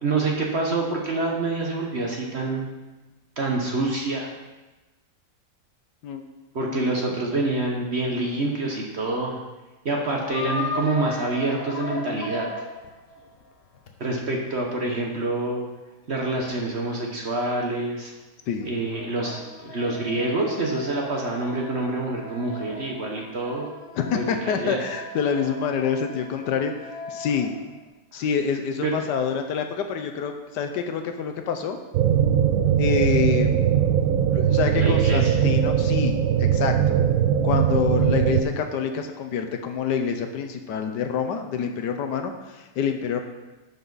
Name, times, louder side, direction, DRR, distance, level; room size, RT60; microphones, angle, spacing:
voice 1, 0.0-2.6 3.4-4.3 6.5-9.4 9.8-12.5 14.0-15.6 16.1-18.1 18.6-23.7 24.1-24.8 28.1-28.2 28.8-28.9 34.8-35.3, right 2 dB, 45° right, 0 dB, 1.1 m, -27 dB
voice 2, 6.7-7.2 18.5-18.7 24.0-26.7 27.1-27.5 28.1-31.8 32.8-33.7 34.3-37.0 37.4-43.2, left 7 dB, 75° left, 6 dB, 1.3 m, -27 dB
sound 1, 10.2-13.9 18.6-27.8, left 2 dB, 45° left, 0.8 m, -36 dB
sound 2, 31.9-38.4, right 9 dB, 70° right, 0.8 m, -20 dB
11.5 x 5.5 x 4.0 m, 1.1 s
omnidirectional pair, 2.0 m